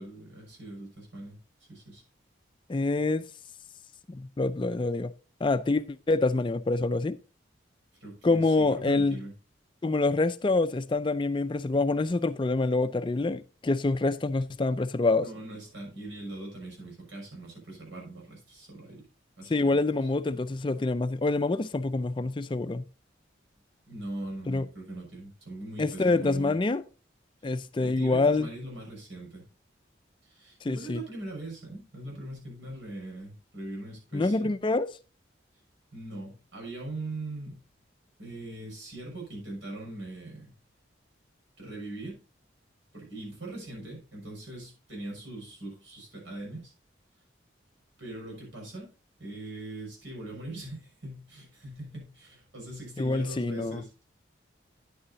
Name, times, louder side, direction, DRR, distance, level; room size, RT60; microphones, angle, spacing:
voice 1, 0.0-1.4 1.7-2.0 8.0-9.3 14.6-19.1 19.4-20.1 23.9-26.6 27.4-29.5 30.2-34.5 35.9-37.6 38.2-40.5 41.6-42.1 42.9-46.7 48.0-48.9 49.2-53.9, right 2 dB, 80° right, 6.0 m, -41 dB
voice 2, 2.7-3.2 4.1-5.1 5.4-7.2 8.2-9.2 9.8-15.3 19.5-22.8 24.5-24.6 25.8-26.8 27.4-28.5 30.7-31.0 34.1-34.9 53.0-53.8, left 3 dB, 25° left, 0.4 m, -26 dB
9.9 x 9.9 x 2.7 m
head